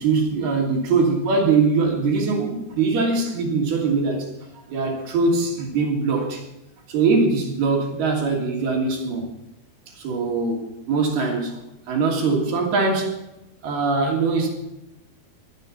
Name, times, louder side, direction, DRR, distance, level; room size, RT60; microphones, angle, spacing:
voice 1, 0.0-4.3 4.7-6.4 6.9-9.3 9.9-11.6 11.9-13.1 13.6-14.5, right 4 dB, 85° right, 0 dB, 4.8 m, -22 dB
23.5 x 9.3 x 4.2 m, 0.93 s
omnidirectional pair, 4.4 m